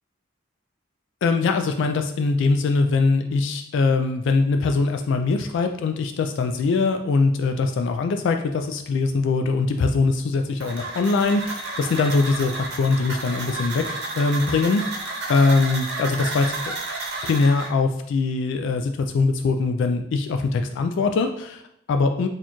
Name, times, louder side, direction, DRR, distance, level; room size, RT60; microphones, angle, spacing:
voice 1, 1.2-16.7 17.2-21.6 21.9-22.3, left 3 dB, 65° left, 6 dB, 0.3 m, -22 dB
sound 1, 10.6-17.7, right 2 dB, 60° right, 0.7 m, -32 dB
4.2 x 2.4 x 2.9 m, 0.75 s
head